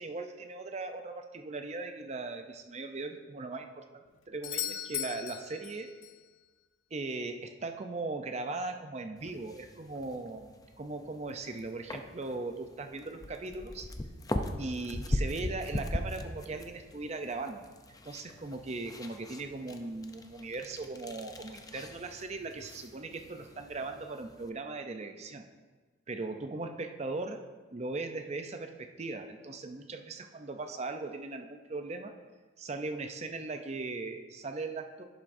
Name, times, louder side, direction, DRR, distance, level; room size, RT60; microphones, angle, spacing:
voice 1, 0.0-5.9 6.9-10.5 10.8-13.9 14.6-17.6 18.0-25.5 26.1-27.4 27.7-32.1 32.6-35.0, right 3 dB, 35° right, 6 dB, 0.5 m, -39 dB
Doorbell, 4.4-6.3 10.3-10.4, left 11 dB, 80° left, 0.5 m, -38 dB
sound 1, 9.2-24.5, left 1 dB, 20° left, 0.5 m, -40 dB
11.0 x 10.5 x 2.6 m, 1.4 s
head